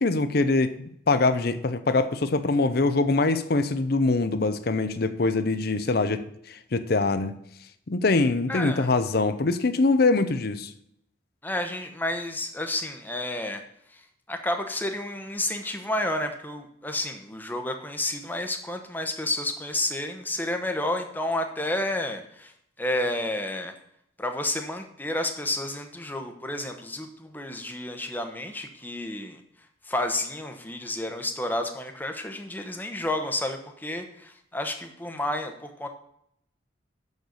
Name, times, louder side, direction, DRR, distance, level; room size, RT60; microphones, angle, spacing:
voice 1, 0.0-6.2 6.5-7.4 7.9-10.7, left 3 dB, 55° left, 11 dB, 0.6 m, -23 dB
voice 2, 8.5-8.9 11.4-13.6 13.9-14.0 14.3-22.5 22.8-23.7 24.2-29.4 29.8-35.9, left 1 dB, 10° left, 5 dB, 0.9 m, -30 dB
6.6 x 6.4 x 7.0 m, 0.72 s
head